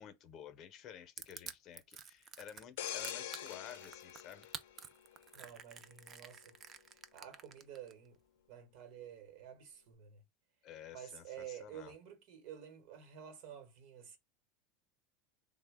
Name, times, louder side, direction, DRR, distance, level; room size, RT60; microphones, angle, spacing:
voice 1, 0.0-4.5 10.6-11.9, left 9 dB, 45° left, 0.6 m, -52 dB
Crushing, 1.2-7.9, right 7 dB, 30° right, 0.4 m, -49 dB
sound 1, 2.8-5.5 5.9-6.1, left 11 dB, 85° left, 0.4 m, -45 dB
voice 2, 5.3-6.6 6.9-8.2 8.5-10.2 10.9-14.2, right 9 dB, 65° right, 1.0 m, -51 dB
3.2 x 2.1 x 3.4 m
supercardioid pair, 130°, 0 cm